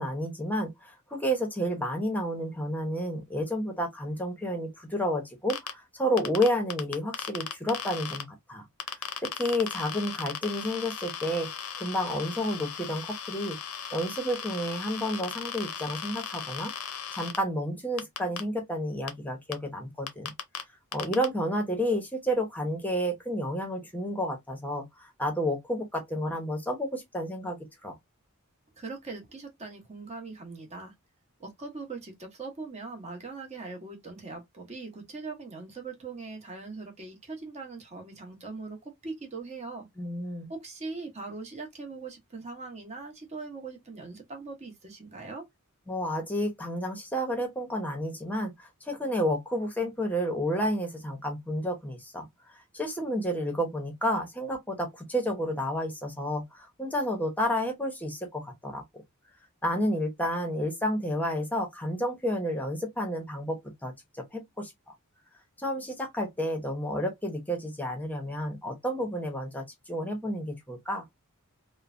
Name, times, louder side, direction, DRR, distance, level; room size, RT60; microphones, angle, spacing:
voice 1, 0.0-8.6 9.2-11.5 11.8-13.6 13.9-16.7 17.1-20.3 20.9-27.9 40.0-40.5 45.9-52.3 52.7-59.0 59.6-64.9 65.6-71.0, equal, 10° left, 0.8 m, -31 dB
sound 1, 5.5-5.7 6.2-8.2 8.8-17.4 18.0-18.4 19.1-19.2 19.5-19.6 20.1-20.6 20.9-21.3, left 8 dB, 80° left, 0.6 m, -36 dB
voice 2, 28.8-30.9 31.4-39.9 40.5-45.4, right 3 dB, 30° right, 0.9 m, -41 dB
3.1 x 2.1 x 2.5 m
head